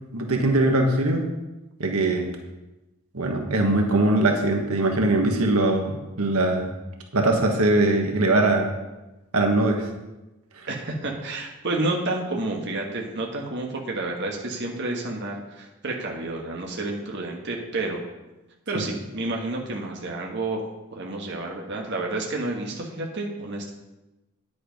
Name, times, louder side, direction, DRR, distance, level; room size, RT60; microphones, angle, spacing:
voice 1, 0.1-1.2 1.8-2.3 3.1-6.7 7.1-8.7 9.3-9.9 18.7-18.8, right 2 dB, 85° right, 2 dB, 1.5 m, -21 dB
voice 2, 10.7-18.0 18.7-20.6 20.9-23.7, right 2 dB, 55° right, 0 dB, 1.4 m, -30 dB
9.9 x 7.9 x 5.2 m, 1.0 s
head